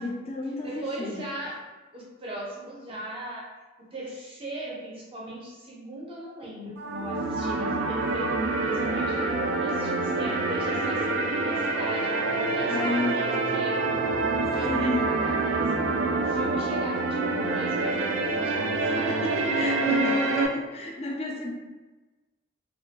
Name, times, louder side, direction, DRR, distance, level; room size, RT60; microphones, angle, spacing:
voice 1, 0.0-1.2 12.7-13.3 14.7-15.1 19.0-21.5, left 2 dB, 30° left, -1 dB, 0.4 m, -31 dB
voice 2, 0.6-1.6 1.9-3.5 3.8-8.3 8.6-12.1 12.5-13.9 14.5-15.7 16.2-19.3, right 1 dB, 30° right, -4 dB, 0.5 m, -38 dB
sound 1, 6.8-20.5, right 3 dB, 90° right, 0.3 m, -26 dB
2.3 x 2.1 x 2.7 m, 1.2 s
head